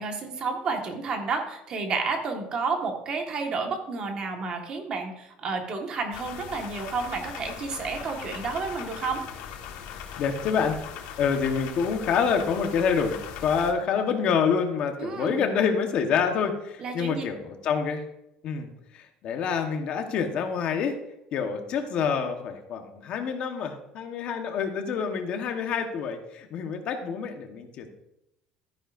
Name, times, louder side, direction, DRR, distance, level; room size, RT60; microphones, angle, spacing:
voice 1, 0.0-9.2 15.0-15.4 16.8-17.2, right 4 dB, 35° right, 3 dB, 1.5 m, -31 dB
sound 1, 6.1-13.7, left 8 dB, 90° left, 1.5 m, -40 dB
voice 2, 10.2-10.8 11.2-18.0 18.4-18.7 18.9-21.0 21.3-27.9, left 6 dB, 45° left, 5 dB, 1.1 m, -27 dB
13.0 x 9.9 x 2.6 m, 0.85 s
cardioid pair, 175°, 3 cm